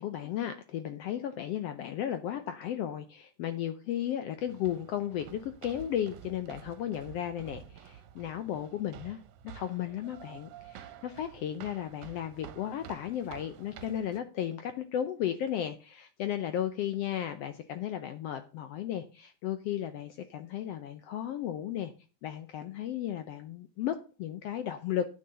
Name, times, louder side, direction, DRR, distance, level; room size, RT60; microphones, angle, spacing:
voice 1, 0.0-21.9 22.2-25.1, left 10 dB, 75° left, 9 dB, 1.5 m, -35 dB
sound 1, 4.4-14.2, right 9 dB, 80° right, 2.1 m, -50 dB
9.6 x 6.4 x 5.5 m, 0.35 s
omnidirectional pair, 3.4 m